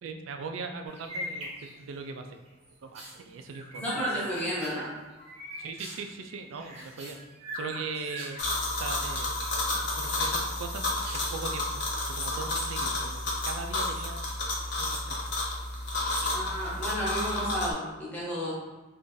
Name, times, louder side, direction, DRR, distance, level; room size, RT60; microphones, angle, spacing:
voice 1, 0.0-2.4 2.8-4.0 5.6-7.2 7.5-8.4 8.8-9.4 10.0-10.9 11.1-11.7 12.1-14.2 14.8-15.2 16.2-16.4, right 4 dB, 70° right, 5 dB, 0.3 m, -39 dB
sound 1, 0.9-2.1 2.5-8.6 9.0-9.9 10.2-11.7 12.5-13.1 13.4-15.5 15.8-16.4 17.3-17.8, equal, 30° right, 0.6 m, -43 dB
voice 2, 3.8-4.9 16.3-18.5, equal, 5° left, -7 dB, 0.9 m, -32 dB
sound 2, 8.4-17.7, left 2 dB, 55° left, 0.8 m, -31 dB
2.5 x 2.4 x 3.8 m, 1.2 s
head